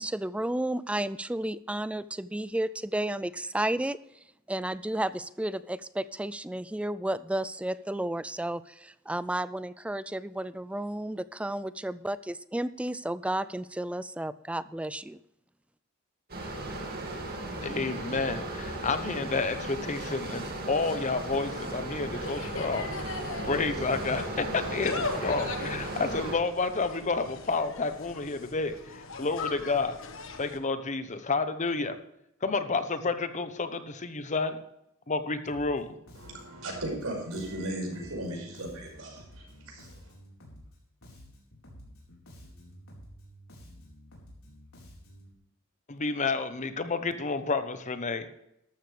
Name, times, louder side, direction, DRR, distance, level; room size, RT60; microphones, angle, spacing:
voice 1, 0.0-4.0 4.5-15.2, right 1 dB, 5° right, 0.3 m, -32 dB
sound 1, 16.3-26.4, right 1 dB, 45° right, 2.3 m, -36 dB
voice 2, 17.6-22.9 23.4-30.0 30.4-32.0 32.4-34.6 35.1-35.9 45.9-48.3, left 3 dB, 35° left, 0.9 m, -30 dB
Insect, 20.8-30.6, left 3 dB, 65° left, 1.4 m, -40 dB
Bass guitar, 35.5-35.8 36.1-40.8 41.0-45.3, equal, 85° left, 4.4 m, -51 dB
voice 3, 36.2-40.1, right 1 dB, 75° right, 5.6 m, -37 dB
13.5 x 12.5 x 3.4 m
head